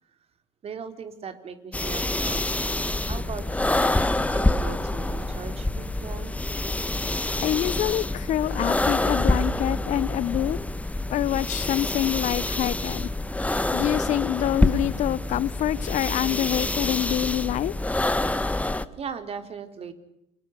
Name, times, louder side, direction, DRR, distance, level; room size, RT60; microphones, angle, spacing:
voice 1, 0.6-2.8 3.0-3.9 4.3-6.7 19.0-19.9, right 6 dB, 45° right, 8 dB, 3.8 m, -39 dB
sound 1, 1.7-18.9, left 2 dB, 10° left, 1.6 m, -26 dB
voice 2, 7.4-10.6 11.1-13.1 13.7-17.7, left 13 dB, 55° left, 21 dB, 0.9 m, -26 dB
29.0 x 25.5 x 6.6 m, 0.82 s
hypercardioid pair, 65°, 15 cm